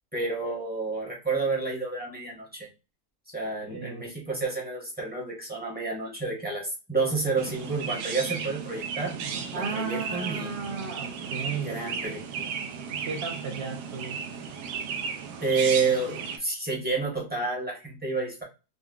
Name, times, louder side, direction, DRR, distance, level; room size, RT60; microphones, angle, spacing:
voice 1, 0.1-2.7 3.3-9.2 9.5-10.5 11.6-12.5 15.4-18.4, right 4 dB, 10° right, -3 dB, 0.8 m, -29 dB
voice 2, 3.6-4.1 9.5-11.9 12.9-14.2, right 5 dB, 55° right, -1 dB, 0.8 m, -35 dB
Chirp tweet, 7.4-16.4, right 6 dB, 85° right, 1.2 m, -35 dB
3.8 x 2.3 x 2.3 m, 0.29 s
omnidirectional pair, 1.7 m